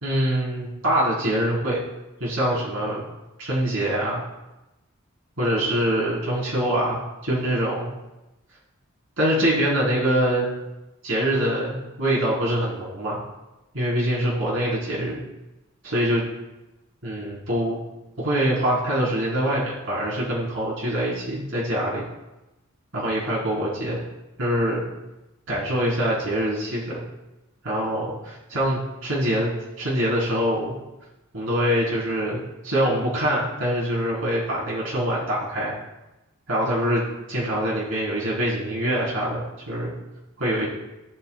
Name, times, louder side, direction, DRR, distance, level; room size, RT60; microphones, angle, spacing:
voice 1, 0.0-1.8 2.2-3.0 3.4-4.2 5.4-7.9 9.2-10.5 11.0-13.2 13.7-15.2 15.8-16.2 17.0-17.8 18.2-22.0 22.9-24.0 24.4-24.8 25.5-27.0 27.6-29.5 29.8-30.8 31.3-35.7 36.5-37.0 37.3-39.9 40.4-40.7, equal, 65° right, -6 dB, 4.0 m, -24 dB
18.5 x 8.6 x 2.4 m, 0.99 s
head